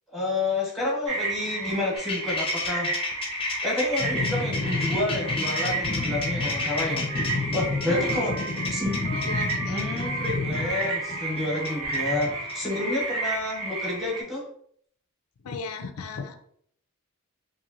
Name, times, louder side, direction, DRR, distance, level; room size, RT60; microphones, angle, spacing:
voice 1, 0.1-2.9 3.6-7.1 7.5-8.3 8.7-8.9 9.7-14.4, left 2 dB, ahead, -4 dB, 0.9 m, -29 dB
sound 1, 1.1-14.2, right 3 dB, 85° right, 0.9 m, -32 dB
sound 2, 2.0-12.5, left 3 dB, 25° left, 0.5 m, -30 dB
Trumpet, 5.2-13.5, right 2 dB, 60° right, 0.7 m, -43 dB
voice 2, 7.9-8.2 9.1-9.9 15.4-16.4, left 5 dB, 90° left, 6 dB, 0.4 m, -36 dB
2.9 x 2.6 x 2.7 m, 0.64 s
head